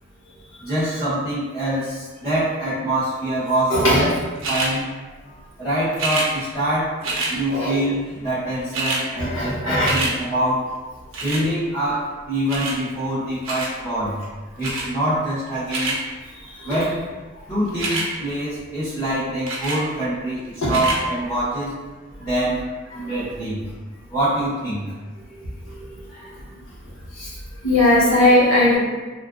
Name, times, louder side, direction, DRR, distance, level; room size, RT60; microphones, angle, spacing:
voice 1, 0.6-4.1 4.5-4.9 5.6-7.0 7.3-10.7 11.2-14.2 14.6-16.0 16.6-17.0 17.5-21.7 22.2-22.7 22.9-23.6 24.1-24.8, right 1 dB, 15° left, -15 dB, 0.9 m, -24 dB
voice 2, 3.7-4.1 7.5-7.8 9.2-10.0 16.5-16.8 20.6-20.7 22.9-23.1 25.3-25.4 25.7-26.3 27.1-27.3 27.6-28.8, left 1 dB, 85° left, -8 dB, 1.1 m, -19 dB
sound 1, 4.4-4.7 5.9-6.3 7.0-7.3 8.3-8.4 8.6-9.0 9.4-10.1 11.1-11.4 12.5-12.8 13.4-13.7 14.6-14.9 15.5-16.0 17.7-18.1 19.5-19.8 20.6-21.0 21.7-21.8, right 2 dB, 75° right, 0.7 m, -26 dB
3.5 x 2.4 x 2.4 m, 1.3 s
head